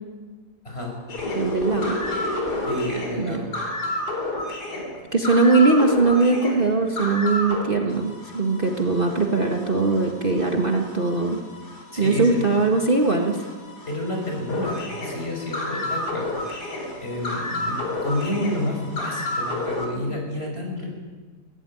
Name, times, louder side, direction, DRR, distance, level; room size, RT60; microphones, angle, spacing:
sound 1, 1.1-7.6 7.9-19.9, left 1 dB, 85° left, 4.6 m, -31 dB
voice 1, 1.3-2.0 3.2-3.4 5.1-11.4 12.0-13.5, right 3 dB, 35° right, 2 dB, 1.8 m, -20 dB
voice 2, 2.6-3.5 11.9-12.5 13.9-16.7 17.0-20.9, left 1 dB, 40° left, 1 dB, 5.9 m, -29 dB
23.0 x 16.5 x 10.0 m, 1.4 s
omnidirectional pair, 1.7 m